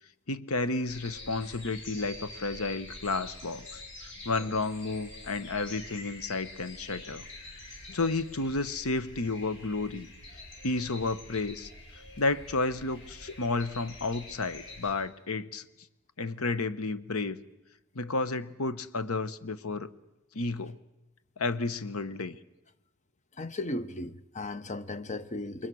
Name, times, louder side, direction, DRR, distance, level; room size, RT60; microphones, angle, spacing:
voice 1, 0.3-7.2 7.9-10.1 10.6-11.7 12.2-15.7 16.2-17.4 17.9-19.9 20.3-20.8 21.4-22.4, left 3 dB, 85° left, 1.1 m, -31 dB
sound 1, 0.9-14.9, left 2 dB, 55° left, 5.6 m, -46 dB
voice 2, 23.4-25.7, left 2 dB, 35° left, 0.9 m, -36 dB
28.0 x 22.5 x 6.3 m
head